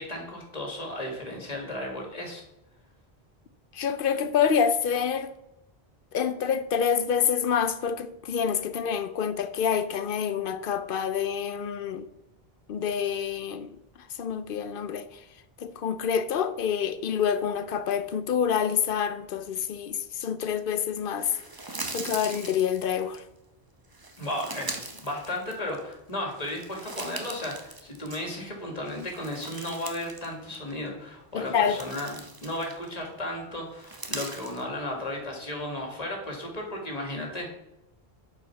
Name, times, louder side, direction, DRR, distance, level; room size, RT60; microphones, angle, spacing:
voice 1, 0.0-2.4 24.2-37.5, left 1 dB, 40° left, 2.0 m, -34 dB
voice 2, 3.7-5.3 6.1-12.0 12.7-13.8 14.2-15.1 15.6-21.3 21.9-23.2 31.3-31.8, left 7 dB, 65° left, 0.7 m, -27 dB
sound 1, 21.2-23.2 23.9-25.9 26.3-28.5 28.8-30.3 30.5-30.7 31.3-33.0 33.7-34.6, right 2 dB, 25° right, 0.8 m, -40 dB
7.5 x 5.0 x 5.8 m
omnidirectional pair, 1.0 m